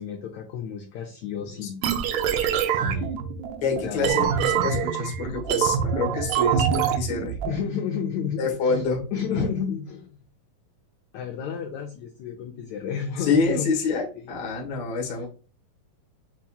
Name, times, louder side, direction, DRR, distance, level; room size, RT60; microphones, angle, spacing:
voice 1, 0.0-1.8 2.7-3.2 3.8-4.0 7.5-10.2 11.1-13.7 14.4-14.5, left 7 dB, 85° left, 3 dB, 1.6 m, -32 dB
sound 1, 1.8-7.5, right 8 dB, 80° right, 1.9 m, -25 dB
voice 2, 3.6-7.4 8.4-9.0 9.3-9.5 13.2-15.3, left 4 dB, 65° left, 0 dB, 1.1 m, -27 dB
7.5 x 2.8 x 2.3 m, 0.36 s
omnidirectional pair, 3.9 m